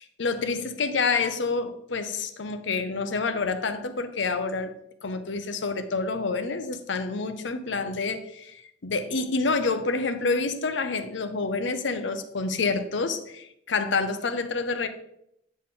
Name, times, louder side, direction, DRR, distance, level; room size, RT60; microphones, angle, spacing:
voice 1, 0.2-4.7 5.0-14.9, left 4 dB, 70° left, 10 dB, 0.7 m, -28 dB
9.0 x 4.2 x 3.7 m, 0.77 s
head